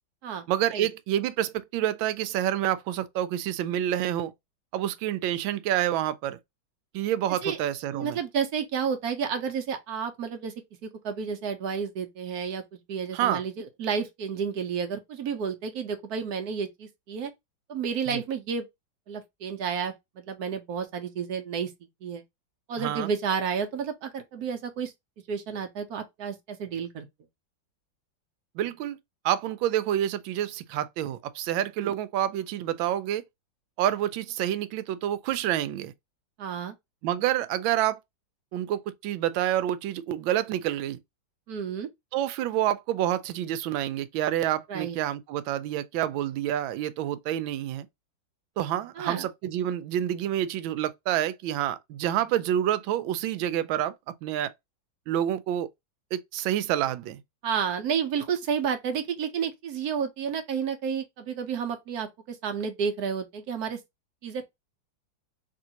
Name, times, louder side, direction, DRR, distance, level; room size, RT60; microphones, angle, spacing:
voice 1, 0.5-4.3 4.7-6.4 6.9-8.2 13.1-13.4 18.1-18.2 22.8-23.1 28.5-29.0 29.2-33.2 33.8-35.9 37.0-38.0 38.5-41.0 42.1-47.9 48.6-54.5 55.1-55.7 56.1-57.2, right 11 dB, 85° right, 1.3 m, -28 dB
voice 2, 7.9-10.5 10.8-12.6 12.9-17.3 17.7-18.7 19.1-21.7 22.0-22.2 22.7-24.9 25.3-27.1 31.8-31.9 36.4-36.7 41.5-41.9 44.7-45.0 49.0-49.2 57.4-63.8 64.2-64.5, right 6 dB, 65° right, 1.1 m, -31 dB
3.5 x 3.1 x 2.8 m
omnidirectional pair, 2.1 m